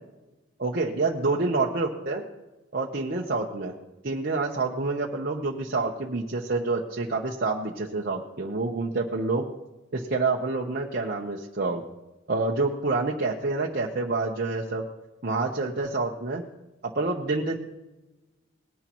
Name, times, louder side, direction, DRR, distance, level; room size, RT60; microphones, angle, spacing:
voice 1, 0.6-2.2 2.7-3.7 4.0-9.4 9.9-11.8 12.3-14.8 15.2-16.4 16.9-17.6, right 3 dB, 50° right, -1 dB, 0.9 m, -27 dB
19.5 x 11.0 x 3.1 m, 1.1 s
head